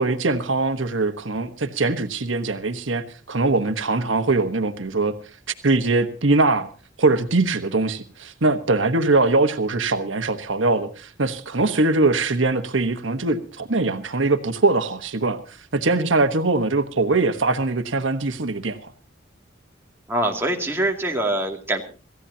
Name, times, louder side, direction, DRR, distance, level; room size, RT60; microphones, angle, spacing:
voice 1, 0.0-5.1 5.6-6.7 7.0-15.4 15.7-18.9, right 3 dB, 85° right, 1.2 m, -22 dB
voice 2, 20.1-21.8, right 1 dB, 15° right, 2.4 m, -24 dB
27.0 x 15.0 x 2.8 m
head